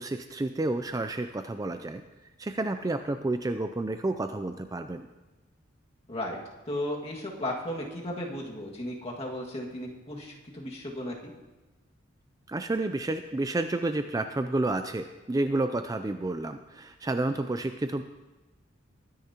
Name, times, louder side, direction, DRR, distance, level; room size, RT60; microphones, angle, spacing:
voice 1, 0.0-2.0 2.4-5.1 12.5-18.0, right 2 dB, 20° right, 9 dB, 0.4 m, -30 dB
voice 2, 6.1-6.4 6.7-11.3, left 1 dB, 30° left, -2 dB, 1.9 m, -35 dB
21.5 x 10.0 x 2.9 m, 1.1 s
head